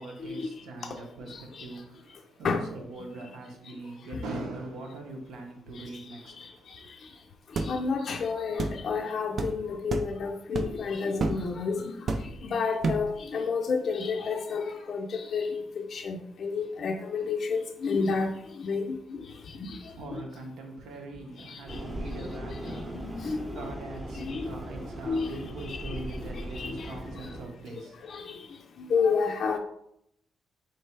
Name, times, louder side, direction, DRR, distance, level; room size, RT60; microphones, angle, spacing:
voice 1, 0.0-6.9 19.7-28.0, right 2 dB, 80° right, 2 dB, 1.0 m, -42 dB
sound 1, 7.6-7.7 8.6-8.8 9.4-9.5 9.9-10.1 10.5-10.8 11.2-11.4 12.1-12.4 12.8-13.1, right 3 dB, 40° right, 0.4 m, -29 dB
voice 2, 7.7-11.9 12.4-18.3 18.6-19.0 19.7-19.8 20.1-20.2 23.0-23.4 24.2-24.5 25.1-25.3 25.7-26.0 26.6-26.9 28.1-28.4 28.8-29.6, left 5 dB, 45° left, 3 dB, 0.4 m, -30 dB
sound 2, 21.7-27.5, right 1 dB, 15° right, 0.8 m, -39 dB
3.3 x 3.1 x 4.5 m, 0.74 s
cardioid pair, 145°, 0 cm